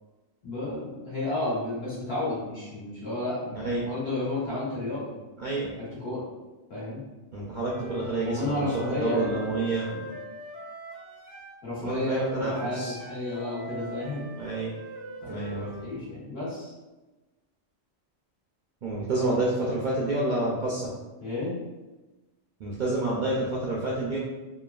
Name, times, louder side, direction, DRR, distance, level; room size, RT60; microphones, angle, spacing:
voice 1, 0.4-5.1 5.8-6.2 6.7-7.0 8.2-10.1 11.6-14.3 15.2-16.7 21.2-21.6, left 2 dB, 60° left, -9 dB, 1.4 m, -32 dB
voice 2, 5.4-5.7 7.3-9.9 11.8-12.9 14.4-14.7 15.3-15.8 18.8-20.9 22.6-24.2, right 2 dB, 60° right, -5 dB, 0.5 m, -28 dB
Wind instrument woodwind instrument, 7.5-11.6 12.5-15.9, right 1 dB, 85° right, 0.9 m, -42 dB
3.1 x 2.2 x 2.3 m, 1.1 s
omnidirectional pair, 1.2 m